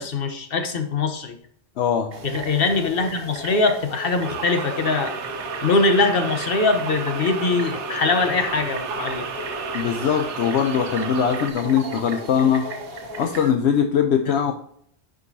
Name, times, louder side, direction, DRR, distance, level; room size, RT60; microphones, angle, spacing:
voice 1, 0.0-1.3 2.2-5.2 5.6-9.2 14.3-14.4, left 3 dB, 55° left, 7 dB, 1.3 m, -22 dB
voice 2, 1.8-2.1 9.7-12.7 13.2-14.5, left 8 dB, 75° left, 5 dB, 1.0 m, -21 dB
sound 1, 2.1-13.5, right 1 dB, 60° right, 1.3 m, -35 dB
sound 2, 4.2-11.5, right 5 dB, 85° right, 1.1 m, -32 dB
11.0 x 5.4 x 2.7 m, 0.65 s
omnidirectional pair, 1.2 m